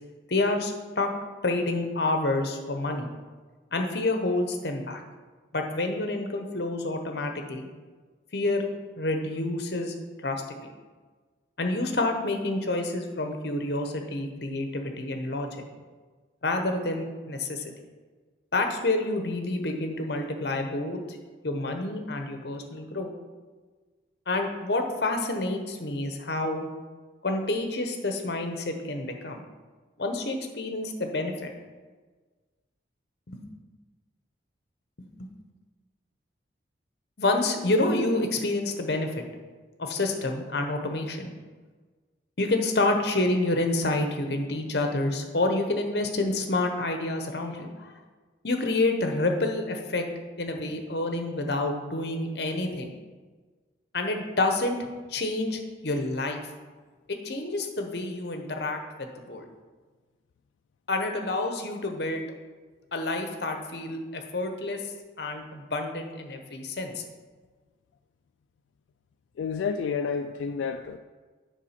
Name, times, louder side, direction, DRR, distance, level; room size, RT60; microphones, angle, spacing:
voice 1, 0.3-1.1 1.4-3.1 3.7-5.0 5.5-7.7 8.3-8.7 9.0-9.9 10.2-10.4 11.6-15.5 16.4-17.7 18.5-21.2 21.4-23.1 24.3-26.7 27.2-29.4 30.0-31.5 33.3-33.4 35.2-35.3 37.2-39.2 39.8-41.3 42.4-47.9 48.4-50.0 50.4-52.9 53.9-56.4 57.1-59.4 60.9-62.2 62.9-64.8 65.2-67.0, left 2 dB, 60° left, 4 dB, 0.9 m, -28 dB
voice 2, 69.4-71.0, left 6 dB, 85° left, 7 dB, 0.3 m, -30 dB
7.2 x 4.9 x 5.8 m, 1.4 s
head